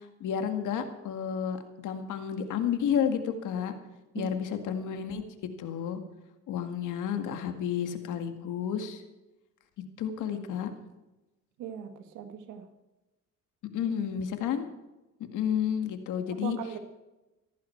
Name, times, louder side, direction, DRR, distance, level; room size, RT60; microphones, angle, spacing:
voice 1, 0.2-3.7 4.1-5.2 5.6-6.0 6.5-9.0 10.0-10.7 13.7-14.6 15.3-16.6, left 8 dB, 85° left, 7 dB, 2.0 m, -31 dB
voice 2, 11.6-12.7 16.3-16.8, right 8 dB, 90° right, 8 dB, 1.8 m, -39 dB
16.5 x 15.0 x 4.5 m, 1.0 s
cardioid pair, 90°, 30 cm